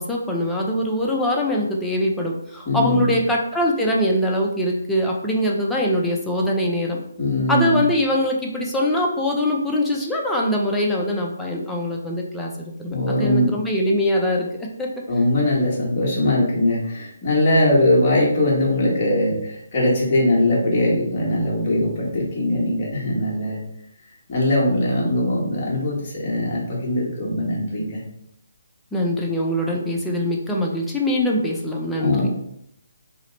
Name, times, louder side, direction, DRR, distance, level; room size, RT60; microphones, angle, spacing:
voice 1, 0.0-7.0 7.5-14.9 28.9-32.3, left 1 dB, 5° left, -2 dB, 0.4 m, -23 dB
voice 2, 2.7-3.1 7.2-7.8 12.9-13.5 15.1-23.6 24.3-28.0 32.0-32.3, left 1 dB, 30° left, -5 dB, 1.1 m, -21 dB
2.8 x 2.0 x 3.8 m, 0.75 s
hypercardioid pair, 160°, 0 cm